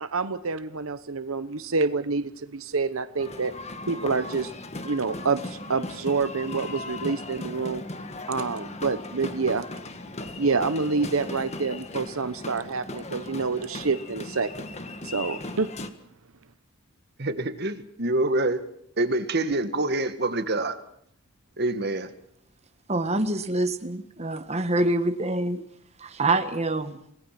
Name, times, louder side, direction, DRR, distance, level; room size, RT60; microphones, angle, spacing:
voice 1, 0.0-3.5 3.9-4.5 4.8-7.8 8.3-9.7 10.4-14.5 15.0-15.7, right 4 dB, 85° right, 1.0 m, -27 dB
sound 1, 3.2-15.9, left 2 dB, 30° left, 1.7 m, -37 dB
voice 2, 17.2-18.6 19.0-20.8 21.6-22.1, right 2 dB, 50° right, 1.8 m, -26 dB
voice 3, 22.9-25.6 26.0-27.0, right 2 dB, 30° right, 1.4 m, -26 dB
29.0 x 19.5 x 5.9 m
head